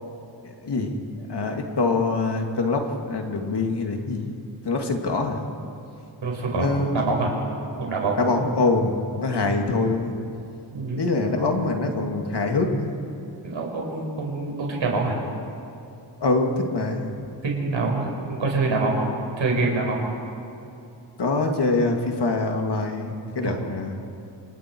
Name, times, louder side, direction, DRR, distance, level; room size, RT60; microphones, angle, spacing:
voice 1, 0.6-4.4 4.6-5.4 6.5-7.0 8.2-10.1 11.0-13.0 16.2-17.1 21.2-24.0, left 3 dB, 60° left, 3 dB, 2.5 m, -24 dB
voice 2, 6.2-7.3 7.8-8.2 10.7-11.1 13.4-15.2 17.4-19.1 19.4-20.1 23.4-23.6, right 3 dB, 75° right, -1 dB, 5.1 m, -25 dB
28.0 x 28.0 x 4.7 m, 2.7 s
wide cardioid pair, 160°, 46 cm